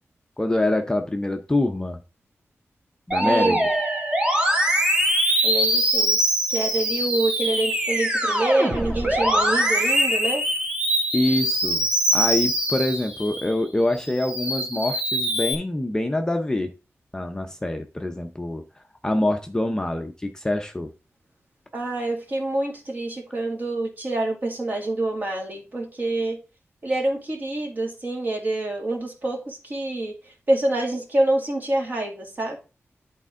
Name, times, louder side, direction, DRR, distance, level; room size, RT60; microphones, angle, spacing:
voice 1, 0.4-2.0 3.1-3.6 11.1-16.8 17.1-18.6 19.0-20.9, left 1 dB, 15° left, 4 dB, 0.6 m, -25 dB
Musical instrument, 3.1-13.5 14.0-15.5, right 1 dB, 20° right, 1.4 m, -23 dB
voice 2, 3.2-3.7 5.4-6.2 6.5-10.4 21.7-26.4 26.8-32.6, right 2 dB, 40° right, 1 dB, 2.2 m, -26 dB
11.0 x 4.3 x 3.6 m, 0.32 s
wide cardioid pair, 160°, 5 cm